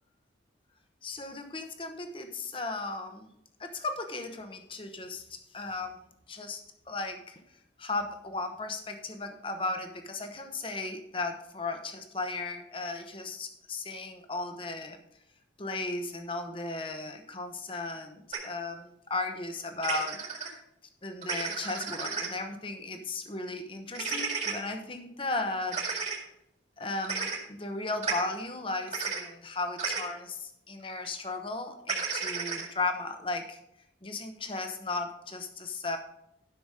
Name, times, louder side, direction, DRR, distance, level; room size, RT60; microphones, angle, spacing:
voice 1, 1.0-3.3 3.6-6.0 6.3-6.6 6.9-7.4 7.8-15.0 15.6-20.6 21.0-25.9 26.8-33.6 34.0-36.0, left 3 dB, 25° left, 6 dB, 1.0 m, -36 dB
sound 1, 18.3-18.4 19.8-20.5 21.2-22.3 23.9-24.5 25.7-26.2 27.0-27.4 28.0-28.1 28.9-29.2 29.8-30.1 31.9-32.7, right 5 dB, 35° right, 2.1 m, -32 dB
11.5 x 6.1 x 5.0 m, 0.79 s
head